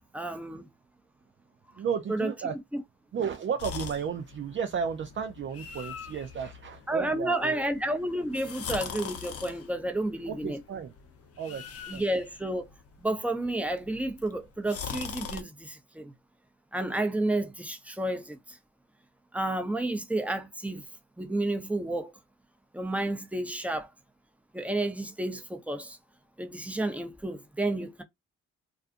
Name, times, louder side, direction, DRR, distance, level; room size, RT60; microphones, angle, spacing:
voice 1, 0.1-0.7 2.1-2.3 2.7-2.8 6.9-10.6 11.9-12.7 13.0-16.1 16.7-18.6 19.3-20.8 21.2-22.1 22.7-23.9 24.5-26.0 26.4-28.0, right 1 dB, 5° right, 0.7 m, -31 dB
voice 2, 1.8-2.6 3.1-7.6 10.3-10.9 11.4-12.0, right 7 dB, 40° right, 0.5 m, -33 dB
sound 1, 3.6-15.4, left 7 dB, 55° left, 0.7 m, -42 dB
2.4 x 2.3 x 2.5 m
supercardioid pair, 50°, 29 cm